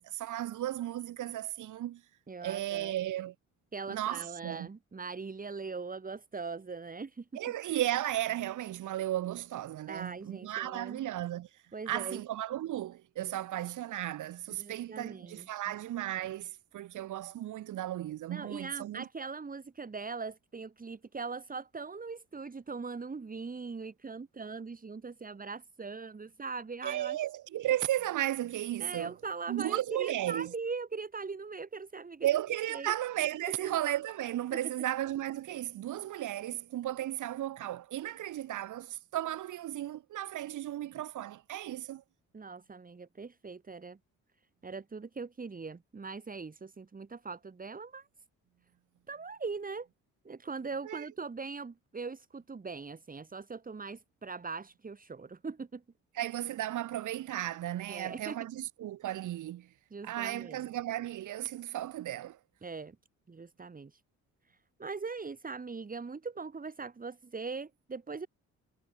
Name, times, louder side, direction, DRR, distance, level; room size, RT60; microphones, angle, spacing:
voice 1, 0.0-2.0 2.4-3.3 3.9-4.7 7.3-19.0 26.8-29.1 29.5-30.5 32.2-42.0 50.9-51.1 56.1-59.7 60.0-62.4, right 13 dB, 80° right, 5.9 m, -35 dB
voice 2, 2.3-2.9 3.7-7.3 9.9-11.1 11.7-12.2 14.5-15.6 18.3-27.3 28.8-32.3 32.7-32.9 33.5-33.7 34.5-34.6 42.3-44.0 44.6-48.1 49.1-49.9 50.3-55.8 57.9-58.4 59.9-60.6 62.6-63.0 63.3-64.0 64.5-68.3, right 4 dB, 30° right, 3.6 m, -41 dB
cardioid pair, 90°, 30 cm